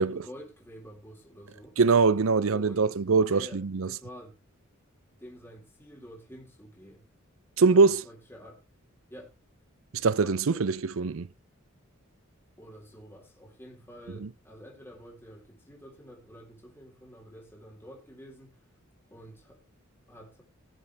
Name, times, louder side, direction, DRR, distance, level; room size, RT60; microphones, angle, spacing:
voice 1, 0.0-1.8 2.5-3.0 3.3-4.4 5.2-7.1 7.7-8.6 9.1-9.3 10.2-10.7 12.6-18.6 19.1-19.6 20.1-20.4, equal, 10° left, 3.8 m, -48 dB
voice 2, 1.8-3.9 7.6-8.0 10.0-11.3, right 4 dB, 70° right, 0.6 m, -23 dB
18.0 x 7.1 x 3.4 m
head